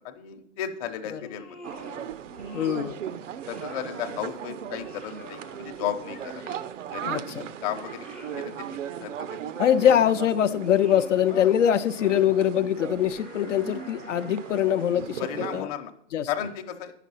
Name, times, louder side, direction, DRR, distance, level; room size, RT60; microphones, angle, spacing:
voice 1, 0.0-1.6 3.5-6.4 6.9-8.1 8.4-9.3 11.3-11.5 15.2-15.9 16.3-16.9, left 10 dB, 30° left, 5 dB, 0.8 m, -34 dB
sound 1, 1.1-2.0 2.3-3.0 3.4-4.3 4.7-6.8 7.2-8.6 9.3-10.1 10.5-11.2 11.7-12.3 12.8-15.0, left 2 dB, ahead, 0.4 m, -47 dB
sound 2, 1.6-15.6, right 9 dB, 80° right, 0.7 m, -38 dB
voice 2, 2.5-3.0 7.1-7.2 9.6-15.3 15.5-15.7 16.1-16.3, left 10 dB, 75° left, 8 dB, 0.7 m, -23 dB
9.2 x 5.9 x 5.6 m, 0.72 s
hypercardioid pair, 150°, 37 cm